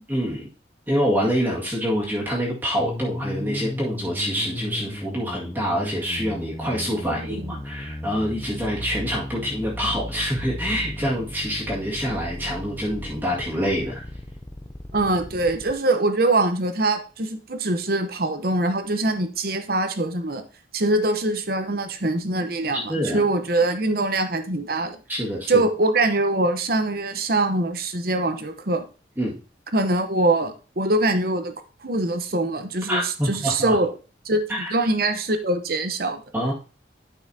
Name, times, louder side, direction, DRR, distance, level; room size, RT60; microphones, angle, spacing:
voice 1, 0.1-0.4 0.9-14.1 22.7-23.2 25.1-25.6 29.2-29.4 32.9-33.8 34.5-34.7 36.3-36.5, equal, 10° right, -6 dB, 2.0 m, -26 dB
sound 1, 2.8-15.7, left 1 dB, 15° left, 0.5 m, -35 dB
voice 2, 7.1-7.6 14.9-20.4 20.7-25.0 25.5-28.8 29.7-31.5 31.8-33.9 34.2-34.4 34.7-36.2, right 2 dB, 50° right, 8 dB, 0.9 m, -23 dB
11.5 x 5.6 x 2.8 m, 0.35 s
head